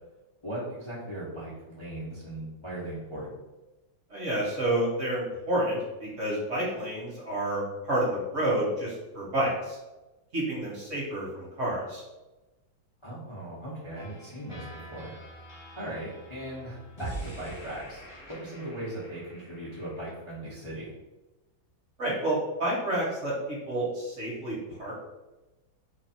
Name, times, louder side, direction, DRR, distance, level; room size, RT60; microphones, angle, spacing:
voice 1, 0.4-3.3 13.0-15.1 15.7-20.9, right 1 dB, 40° left, -9 dB, 0.4 m, -38 dB
voice 2, 4.1-9.8 10.3-12.0 22.0-24.9, right 1 dB, 45° right, -6 dB, 1.2 m, -29 dB
sound 1, 13.9-20.1, right 2 dB, 20° left, 0.8 m, -44 dB
3.2 x 2.6 x 4.2 m, 1.1 s
omnidirectional pair, 2.2 m